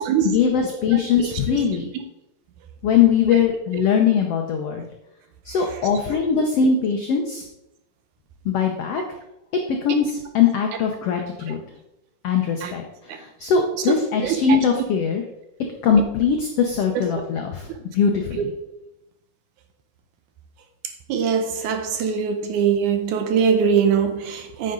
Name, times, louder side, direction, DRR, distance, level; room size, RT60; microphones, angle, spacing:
voice 1, 0.2-1.9 2.8-4.9 5.4-7.4 8.4-9.0 9.7-11.6 12.2-15.2 15.8-17.7 17.9-18.5, left 6 dB, 80° left, 3 dB, 1.3 m, -21 dB
voice 2, 0.9-1.6 3.3-3.4 6.1-6.2 12.6-12.7 14.2-14.6 17.2-17.3 21.1-24.7, right 7 dB, 75° right, 7 dB, 2.1 m, -22 dB
9.4 x 7.9 x 3.8 m, 0.86 s
omnidirectional pair, 3.9 m